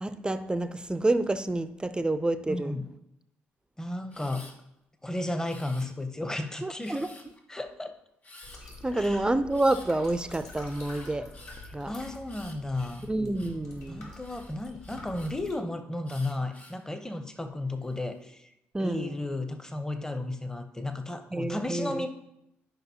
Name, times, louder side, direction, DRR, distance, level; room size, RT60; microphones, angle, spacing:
voice 1, 0.0-2.7 6.6-7.1 8.8-11.3 11.7-11.9 13.1-14.1 18.7-19.2 21.3-22.1, right 2 dB, 15° right, 12 dB, 0.6 m, -28 dB
voice 2, 2.5-2.9 3.8-4.5 5.0-7.1 7.5-7.9 8.9-9.3 11.6-13.0 13.9-18.5 18.8-22.1, left 2 dB, 10° left, 8 dB, 0.9 m, -34 dB
Camera, 4.1-4.5 5.4-6.2 6.8-7.4 8.2-8.6 9.5-9.9 10.7-13.6 14.2-15.3 16.0-16.8 17.4-18.0, left 2 dB, 30° left, 1.8 m, -51 dB
sound 1, 8.4-15.5, left 2 dB, 65° left, 3.1 m, -47 dB
11.5 x 5.3 x 2.8 m, 0.82 s
hypercardioid pair, 45°, 6 cm